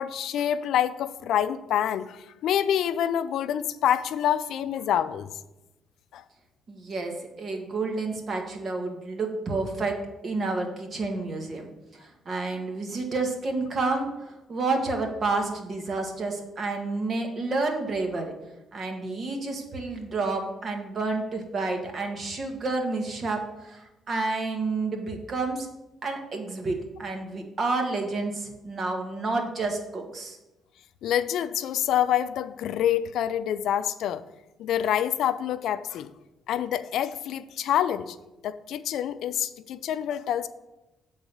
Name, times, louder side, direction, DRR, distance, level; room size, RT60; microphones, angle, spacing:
voice 1, 0.0-5.3 6.1-6.2 31.0-34.2 34.6-36.1 36.5-38.2 38.4-40.5, left 10 dB, 80° left, 13 dB, 0.4 m, -26 dB
voice 2, 6.7-10.0 10.2-11.7 12.0-18.3 18.7-25.7 26.0-30.4, right 3 dB, 45° right, 3 dB, 1.6 m, -30 dB
8.4 x 4.0 x 6.8 m, 0.99 s
cardioid pair, 90°, 0 cm